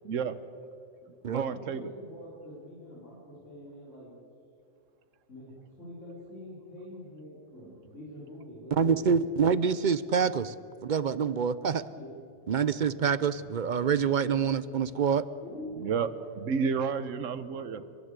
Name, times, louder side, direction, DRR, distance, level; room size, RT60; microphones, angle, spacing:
voice 1, 0.0-0.3 1.3-1.9 7.6-7.7 15.8-16.1 16.4-17.9, right 6 dB, 85° right, 13 dB, 1.3 m, -31 dB
voice 2, 1.4-4.1 5.3-9.3 11.9-12.2 15.4-16.2, left 1 dB, 75° left, -6 dB, 4.2 m, -45 dB
voice 3, 8.7-10.5 10.8-11.8 12.5-15.2, right 6 dB, 50° right, 15 dB, 0.6 m, -26 dB
29.0 x 11.5 x 8.1 m, 2.6 s
omnidirectional pair, 1.3 m